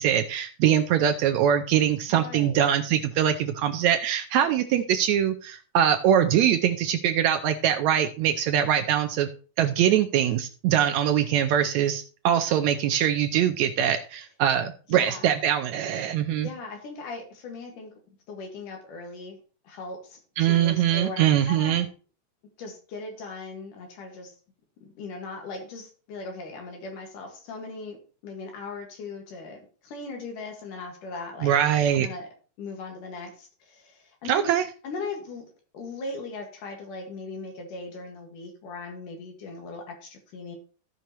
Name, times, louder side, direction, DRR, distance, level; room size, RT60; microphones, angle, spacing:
voice 1, 0.0-9.3 9.6-16.5 20.4-21.9 31.4-32.1 34.3-34.6, right 10 dB, 75° right, 7 dB, 1.7 m, -23 dB
voice 2, 2.1-2.7 14.9-15.3 16.4-17.9 18.3-19.4 19.6-21.8 22.6-24.3 24.8-28.0 28.2-31.6 31.9-32.3 32.6-34.6 34.8-35.5 35.7-40.6, left 3 dB, 80° left, 3 dB, 3.3 m, -38 dB
15.5 x 5.6 x 3.0 m, 0.39 s
omnidirectional pair, 3.7 m